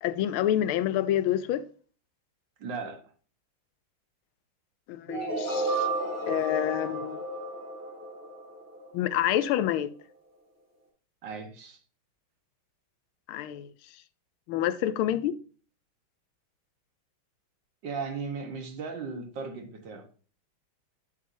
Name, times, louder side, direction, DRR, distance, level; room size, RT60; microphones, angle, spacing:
voice 1, 0.0-1.6 4.9-5.9 6.3-7.2 8.9-9.9 13.3-13.7 14.5-15.3, left 12 dB, 90° left, 1.5 m, -27 dB
voice 2, 2.6-3.1 11.2-11.8 17.8-20.1, right 5 dB, 60° right, 1.9 m, -36 dB
sound 1, 5.1-9.0, right 2 dB, 5° right, 2.2 m, -32 dB
9.2 x 7.4 x 2.7 m
omnidirectional pair, 2.3 m